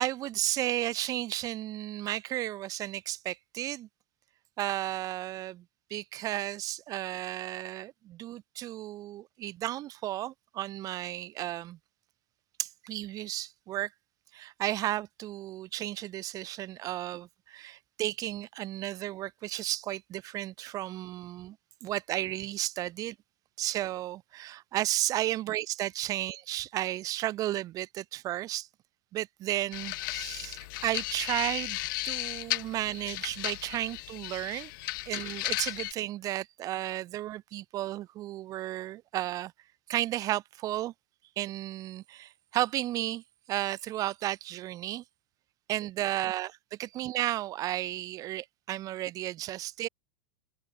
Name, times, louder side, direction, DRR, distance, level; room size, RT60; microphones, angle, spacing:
voice 1, 0.0-3.9 4.6-5.6 5.9-11.8 12.6-13.9 14.3-21.6 21.8-23.1 23.6-28.7 29.1-31.8 32.0-34.7 35.1-39.5 39.9-40.9 41.4-43.2 43.5-45.0 45.7-46.5 46.8-49.9, right 14 dB, 25° right, 1.2 m, -33 dB
sound 1, 29.7-35.9, left 20 dB, 55° left, 0.9 m, -35 dB
open air
supercardioid pair, 165°, 13 cm